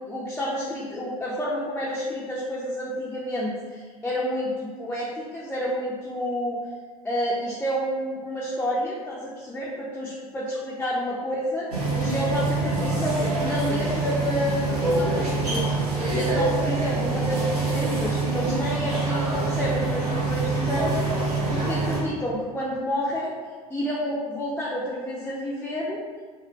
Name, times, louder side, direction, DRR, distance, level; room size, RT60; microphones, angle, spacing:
voice 1, 0.1-6.6 7.0-15.6 15.9-23.3 23.7-26.0, equal, 5° left, -6 dB, 0.4 m, -29 dB
sound 1, 11.7-22.0, right 3 dB, 80° right, 0.7 m, -25 dB
3.9 x 2.0 x 2.2 m, 1.5 s
figure-of-eight pair, 65°, 20 cm